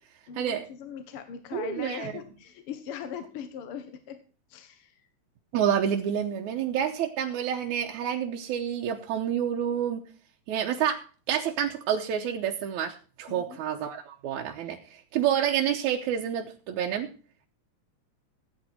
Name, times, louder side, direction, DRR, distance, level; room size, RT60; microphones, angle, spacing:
voice 1, 0.3-4.2 4.5-5.0 13.3-13.6, left 7 dB, 60° left, 9 dB, 1.8 m, -40 dB
voice 2, 1.5-2.1 5.5-10.0 10.5-17.1, right 9 dB, 90° right, 1 dB, 2.4 m, -28 dB
15.5 x 8.8 x 4.4 m, 0.39 s
omnidirectional pair, 3.3 m